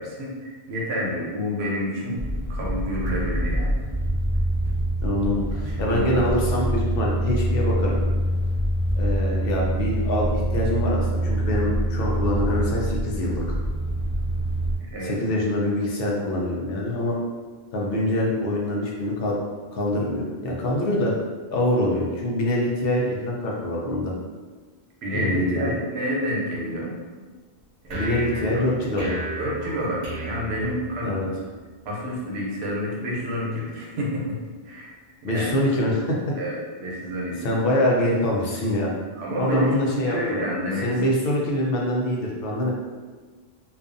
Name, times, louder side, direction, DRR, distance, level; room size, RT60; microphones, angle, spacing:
voice 1, 0.0-3.7 5.6-6.3 14.8-15.2 25.0-26.9 27.9-28.0 29.4-31.2 31.9-34.4 34.6-34.9 35.2-35.5 36.4-37.6 39.2-41.0, equal, 80° right, -4 dB, 0.9 m, -29 dB
sound 1, 2.2-14.7, right 1 dB, 5° left, 0.6 m, -25 dB
voice 2, 5.0-8.0 8.9-13.4 15.0-17.2 17.7-19.4 19.7-21.1 21.5-24.1 25.1-25.7 27.9-29.2 31.0-31.3 35.2-36.2 37.4-38.9 39.4-40.4 40.8-42.7, left 1 dB, 65° left, -3 dB, 0.7 m, -24 dB
sound 2, 27.9-31.3, right 2 dB, 50° right, 0.8 m, -34 dB
2.4 x 2.3 x 2.5 m, 1.4 s
omnidirectional pair, 1.1 m